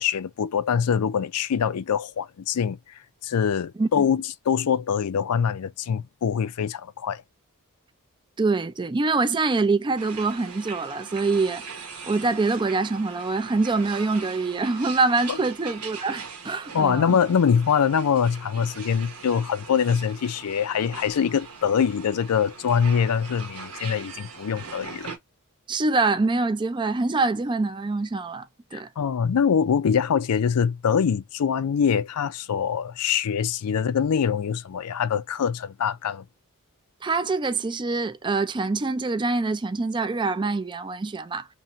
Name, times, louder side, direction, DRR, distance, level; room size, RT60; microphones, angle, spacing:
voice 1, 0.0-2.8 3.2-7.2 15.3-15.4 16.7-25.1 28.7-36.2, left 7 dB, 80° left, 0.4 m, -24 dB
voice 2, 8.4-11.6 12.0-17.2 25.7-28.5 28.7-28.9 37.0-41.5, right 3 dB, 20° right, 0.4 m, -25 dB
sound 1, 10.0-25.2, right 5 dB, 85° right, 1.2 m, -41 dB
2.9 x 2.7 x 4.2 m
head